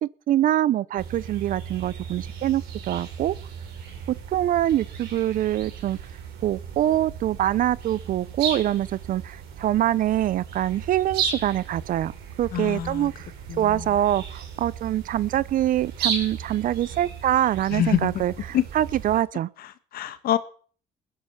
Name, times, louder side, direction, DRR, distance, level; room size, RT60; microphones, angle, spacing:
voice 1, 0.0-3.3 4.3-6.0 6.4-12.1 12.4-13.3 13.6-19.5, right 12 dB, 60° right, 0.7 m, -24 dB
sound 1, 1.0-19.2, right 7 dB, 80° right, 4.5 m, -35 dB
voice 2, 12.5-13.1 13.5-13.9 17.7-18.2 18.5-18.6 19.9-20.4, left 11 dB, 70° left, 1.6 m, -25 dB
20.0 x 10.5 x 5.7 m
cardioid pair, 95°, 16 cm